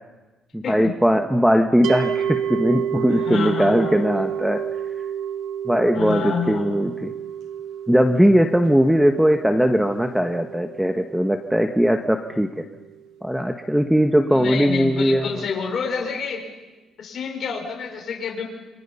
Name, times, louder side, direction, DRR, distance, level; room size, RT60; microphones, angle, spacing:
voice 1, 0.5-4.6 5.6-7.1 7.9-12.6 13.2-15.5, equal, 5° right, 6 dB, 1.4 m, -19 dB
sound 1, 1.8-13.0, right 9 dB, 80° right, 1.4 m, -30 dB
voice 2, 3.1-4.1 5.9-6.8 14.3-16.4 17.0-18.5, left 6 dB, 60° left, 1 dB, 6.1 m, -28 dB
28.5 x 26.0 x 5.7 m, 1.2 s
cardioid pair, 90°, 0 cm